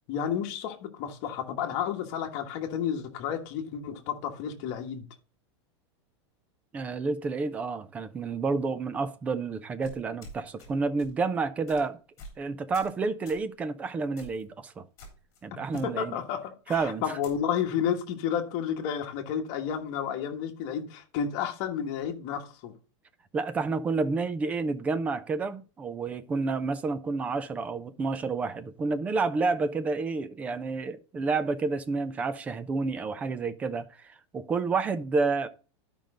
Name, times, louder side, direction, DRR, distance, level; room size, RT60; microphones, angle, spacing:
voice 1, 0.1-5.0 15.8-22.7, left 8 dB, 35° left, 1.4 m, -31 dB
voice 2, 6.7-12.0 12.4-14.8 15.4-16.2 16.7-17.0 23.3-35.5, right 4 dB, 10° right, 0.3 m, -29 dB
sound 1, 9.8-10.7 11.0-11.2 11.7-11.8 12.2-12.4 12.7-13.0 13.3-13.5 14.2-14.4 15.0-15.4 15.7-15.8 16.7-17.4, equal, 20° left, 3.4 m, -47 dB
12.0 x 5.2 x 3.8 m
supercardioid pair, 175°, 15 cm